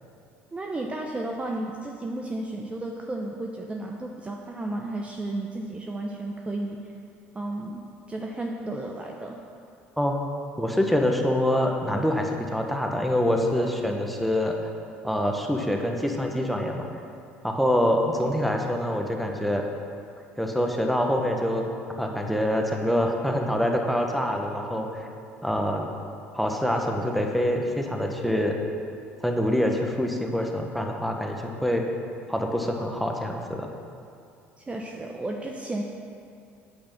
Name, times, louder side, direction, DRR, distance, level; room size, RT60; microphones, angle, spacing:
voice 1, 0.5-6.8 7.3-7.8 8.1-9.4 34.6-35.8, right 2 dB, 20° right, 0 dB, 0.9 m, -33 dB
voice 2, 10.6-14.7 15.0-16.9 17.4-19.6 20.4-21.6 22.0-24.9 25.4-25.9 26.3-28.6 29.2-31.8 32.3-33.7, equal, ahead, 1 dB, 1.5 m, -25 dB
8.8 x 8.7 x 5.8 m, 2.4 s
hypercardioid pair, 60°, 6 cm